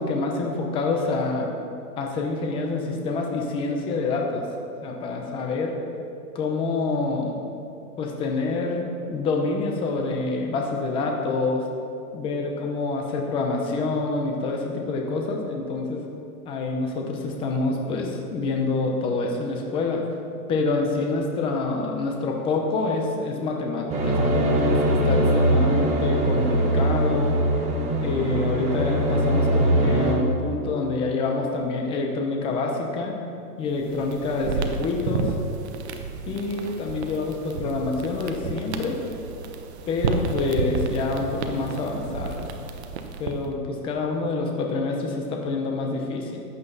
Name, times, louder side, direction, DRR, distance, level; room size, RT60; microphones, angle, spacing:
voice 1, 0.0-1.5 2.0-4.4 4.8-5.7 6.3-7.4 8.0-11.6 12.1-16.0 16.4-20.0 20.5-27.3 28.0-33.2 33.6-35.3 36.3-39.0 39.9-42.5 43.2-46.4, left 3 dB, 10° left, 1 dB, 0.8 m, -27 dB
sound 1, 23.9-30.1, right 1 dB, 15° right, 1.4 m, -21 dB
burning candle in the wind, 33.7-43.5, right 5 dB, 40° right, 1.1 m, -31 dB
14.5 x 10.5 x 4.1 m, 2.6 s
hypercardioid pair, 160°, 48 cm